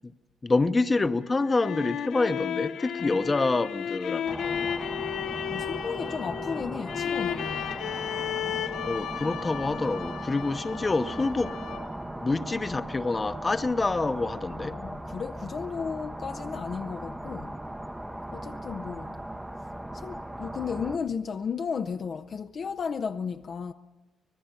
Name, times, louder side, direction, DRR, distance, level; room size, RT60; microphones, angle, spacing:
voice 1, 0.4-4.7 8.8-11.6 12.2-14.8, left 3 dB, 25° left, 0.9 m, -27 dB
sound 1, 1.2-12.1, left 9 dB, 80° left, 0.9 m, -34 dB
voice 2, 3.0-3.3 5.5-7.8 14.6-17.5 18.3-19.2 19.9-23.7, left 6 dB, 50° left, 0.6 m, -34 dB
sound 2, 4.3-21.0, right 1 dB, 10° right, 0.8 m, -38 dB
25.0 x 19.5 x 5.8 m
cardioid pair, 90°, 0 cm